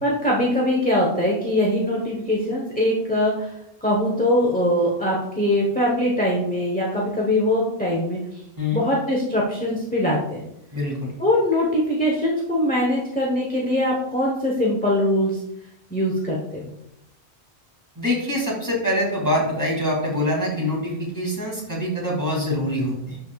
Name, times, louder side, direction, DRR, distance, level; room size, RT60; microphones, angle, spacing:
voice 1, 0.0-3.5 3.8-8.4 8.7-10.5 11.2-15.4 15.9-16.7, left 1 dB, 10° left, -4 dB, 1.1 m, -22 dB
voice 2, 10.7-11.1 18.0-23.2, left 1 dB, 15° right, -5 dB, 2.7 m, -24 dB
11.0 x 5.2 x 2.4 m, 0.81 s
omnidirectional pair, 1.1 m